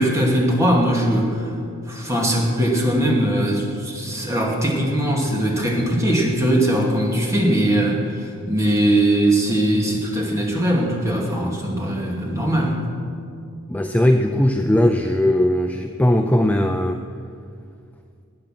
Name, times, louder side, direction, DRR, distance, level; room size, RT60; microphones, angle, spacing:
voice 1, 0.0-1.5 1.9-12.8, right 1 dB, 15° right, -2 dB, 2.4 m, -20 dB
voice 2, 13.7-17.0, left 1 dB, 5° left, 5 dB, 0.4 m, -18 dB
20.0 x 9.0 x 5.9 m, 2.4 s
head